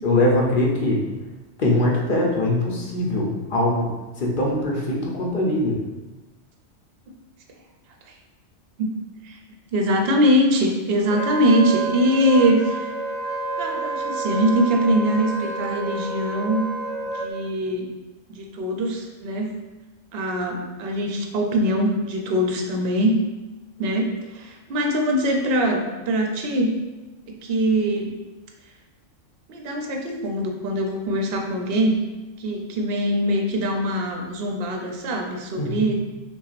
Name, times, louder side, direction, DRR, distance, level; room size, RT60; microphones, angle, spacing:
voice 1, 0.0-1.0 1.6-3.9 4.2-5.8 35.6-35.9, left 1 dB, 50° left, -2 dB, 0.7 m, -22 dB
voice 2, 8.8-9.4 9.7-12.9 13.6-16.6 17.1-17.9 18.3-19.6 20.1-23.2 23.8-26.7 27.3-28.1 29.5-32.0 32.4-36.0, equal, 60° right, 2 dB, 0.7 m, -22 dB
Wind instrument woodwind instrument, 11.1-17.3, right 3 dB, 30° left, 1.2 m, -29 dB
5.7 x 2.3 x 2.4 m, 1.2 s
omnidirectional pair, 1.3 m